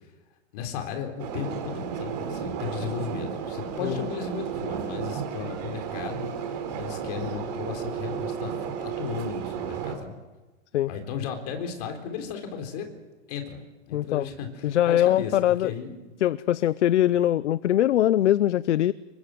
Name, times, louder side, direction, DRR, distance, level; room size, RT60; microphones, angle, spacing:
voice 1, 0.5-10.1 10.9-12.9 13.3-16.0 17.1-17.2, left 7 dB, 35° left, 5 dB, 3.8 m, -35 dB
sound 1, 1.2-9.9, right 7 dB, 35° right, 4.0 m, -33 dB
voice 2, 13.9-14.3 14.6-15.7 16.2-18.9, left 12 dB, 70° left, 17 dB, 0.8 m, -22 dB
27.5 x 23.5 x 7.8 m, 1.2 s
supercardioid pair, 180°, 36 cm